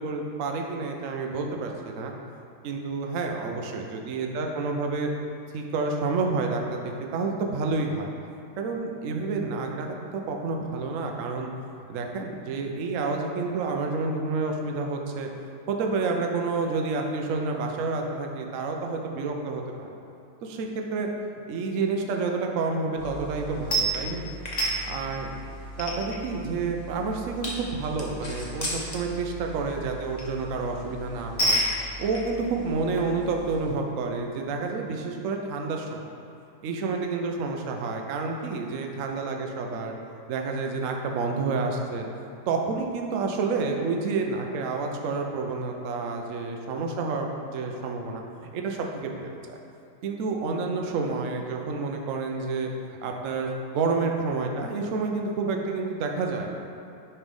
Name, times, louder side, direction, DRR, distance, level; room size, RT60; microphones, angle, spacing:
voice 1, 0.0-2.1 2.6-5.1 5.5-8.1 8.6-11.5 11.9-15.3 15.7-20.0 20.4-21.1 21.5-24.2 24.7-25.3 25.8-31.6 32.0-36.1 36.6-39.9 40.3-42.1 42.5-49.6 50.0-52.7 53.0-56.6, right 4 dB, 80° right, 2 dB, 0.7 m, -29 dB
sound 1, 23.0-33.7, right 1 dB, 30° left, 0.8 m, -32 dB
9.7 x 3.4 x 5.3 m, 2.6 s
omnidirectional pair, 2.3 m